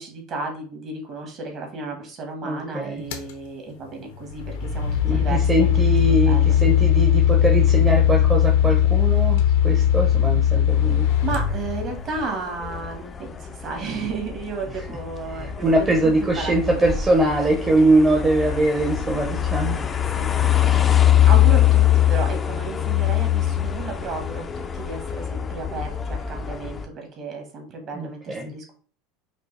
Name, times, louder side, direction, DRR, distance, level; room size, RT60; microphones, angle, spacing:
voice 1, 0.0-5.7 6.1-6.6 11.2-16.8 17.2-17.5 20.1-28.7, right 4 dB, 45° right, 2 dB, 1.5 m, -33 dB
voice 2, 2.4-3.0 5.0-11.1 15.3-19.8 27.9-28.5, right 2 dB, 20° right, 0 dB, 0.8 m, -22 dB
sound 1, 3.1-3.3 4.2-12.2, left 10 dB, 75° left, 0.7 m, -19 dB
sound 2, 10.7-26.8, left 11 dB, 25° left, 0.4 m, -23 dB
5.1 x 2.1 x 3.3 m, 0.40 s
supercardioid pair, 105°, 0 cm